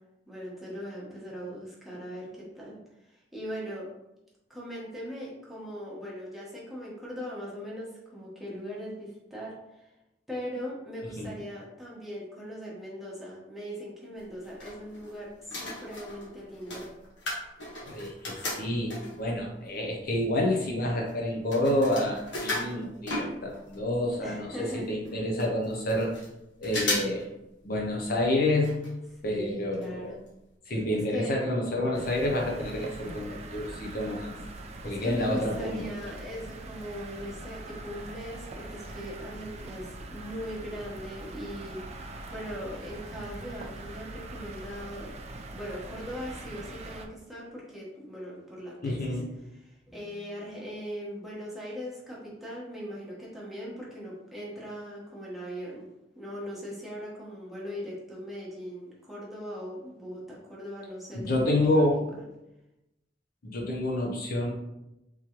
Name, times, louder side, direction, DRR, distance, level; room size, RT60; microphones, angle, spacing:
voice 1, 0.3-3.9 4.5-9.9 10.3-16.9 24.2-24.9 29.2-30.2 30.8-31.5 34.8-45.1 45.5-49.2 49.6-55.9 56.1-61.9, equal, ahead, -6 dB, 1.0 m, -40 dB
sound 1, 14.2-15.1 15.4-19.3 19.9-20.0 20.2-23.8 24.1-24.2 24.4-24.5 25.0-25.1 25.4-26.3 26.6-27.2 27.5-27.6 28.6-28.9 29.2-29.3 29.8-29.9 30.3-30.4, left 2 dB, 75° left, 1.2 m, -35 dB
voice 2, 17.8-26.1 26.6-27.3 27.6-28.9 29.2-30.2 30.7-34.3 34.8-35.9 48.8-49.3 61.1-62.0 63.4-64.5, left 1 dB, 50° left, -1 dB, 0.6 m, -28 dB
sound 2, 31.9-47.1, right 2 dB, 35° right, 0.3 m, -42 dB
3.6 x 3.0 x 2.9 m, 0.91 s
head